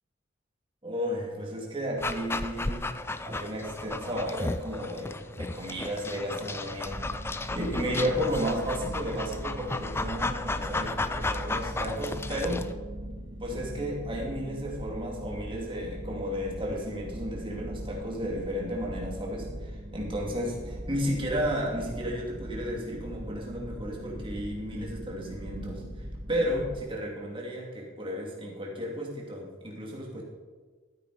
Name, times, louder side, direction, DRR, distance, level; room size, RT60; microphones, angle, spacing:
voice 1, 0.8-2.9 3.2-7.1 7.5-12.6 13.4-30.2, equal, 25° right, -2 dB, 2.5 m, -33 dB
Dog, 2.0-12.7, left 2 dB, 10° left, 0.4 m, -34 dB
sound 1, 6.9-26.8, equal, 40° right, 1.7 m, -40 dB
13.0 x 9.2 x 4.8 m, 1.4 s
head